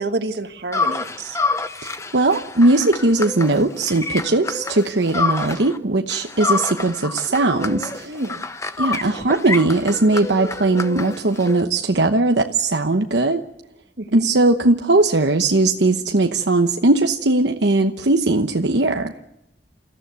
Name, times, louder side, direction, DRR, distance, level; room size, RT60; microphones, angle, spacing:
voice 1, 0.0-1.4 8.0-8.4 14.0-14.3, right 2 dB, 65° right, 7 dB, 1.6 m, -28 dB
sound 1, 0.7-5.8 6.1-11.6, left 3 dB, 15° left, 1.0 m, -28 dB
voice 2, 1.8-8.1 8.8-13.4 14.1-19.1, right 2 dB, 85° right, 4 dB, 1.1 m, -19 dB
29.0 x 15.0 x 9.4 m, 0.87 s
head